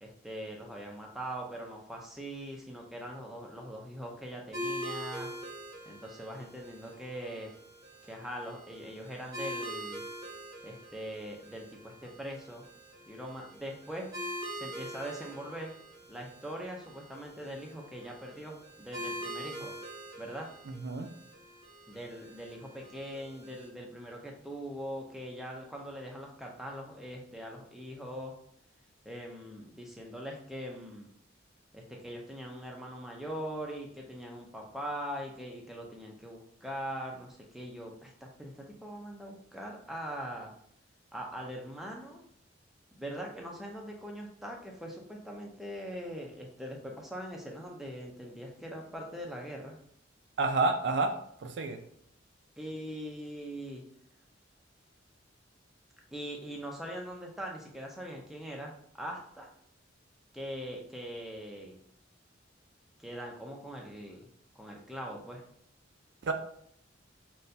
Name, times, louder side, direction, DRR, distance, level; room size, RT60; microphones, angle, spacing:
voice 1, 0.0-5.3 5.9-7.5 8.0-10.0 10.6-12.6 13.1-14.1 14.5-15.7 16.1-19.8 20.2-20.5 21.9-28.4 29.0-31.1 31.7-40.5 41.1-42.2 43.0-49.8 52.6-53.8 56.1-59.5 60.3-61.8 63.0-64.3 64.6-65.4, equal, ahead, -1 dB, 0.5 m, -42 dB
sound 1, 4.5-23.7, equal, 20° right, 0.8 m, -44 dB
voice 2, 20.7-21.1 50.4-51.1 51.4-51.8 66.2-66.3, right 3 dB, 60° right, 6 dB, 0.4 m, -29 dB
3.9 x 2.2 x 2.6 m, 0.67 s
head